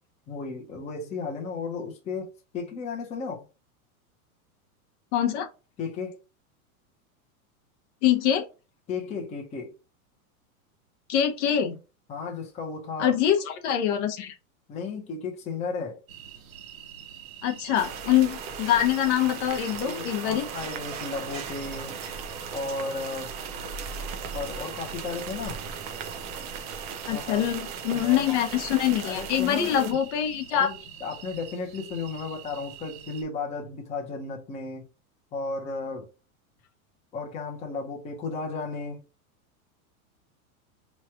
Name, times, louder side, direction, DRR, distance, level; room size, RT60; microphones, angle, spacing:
voice 1, 0.3-3.5 5.8-6.2 8.9-9.7 12.1-13.1 14.7-16.0 19.8-22.0 22.5-23.4 24.3-25.6 27.1-27.4 27.9-28.3 29.0-30.0 30.5-34.9 35.3-36.1 37.1-39.0, left 4 dB, 15° left, 0.7 m, -34 dB
voice 2, 5.1-5.5 8.0-8.5 11.1-11.8 13.0-14.3 17.4-20.4 27.1-30.7, left 10 dB, 50° left, 0.8 m, -24 dB
sound 1, 16.1-33.2, right 9 dB, 65° right, 1.1 m, -46 dB
sound 2, 17.7-29.9, right 6 dB, 30° right, 0.4 m, -37 dB
3.1 x 2.4 x 4.4 m
supercardioid pair, 155°, 43 cm